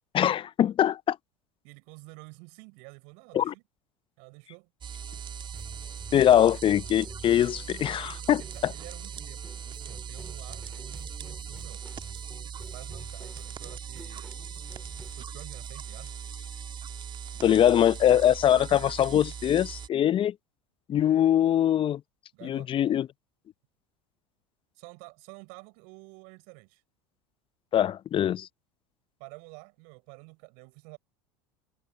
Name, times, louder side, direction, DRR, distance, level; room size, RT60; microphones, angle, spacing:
voice 1, 0.1-1.2 3.3-3.5 6.1-8.7 17.4-20.3 20.9-22.0 22.4-23.1 27.7-28.5, left 10 dB, 35° left, 0.6 m, -23 dB
voice 2, 1.6-3.6 4.2-4.7 8.1-11.8 12.7-14.3 15.1-16.1 22.3-22.8 24.7-26.8 29.2-31.0, right 34 dB, 65° right, 6.6 m, -49 dB
sound 1, 4.8-19.9, right 7 dB, 30° right, 1.4 m, -40 dB
sound 2, 5.5-15.1, equal, ahead, 3.4 m, -50 dB
hypercardioid pair, 80°, 15 cm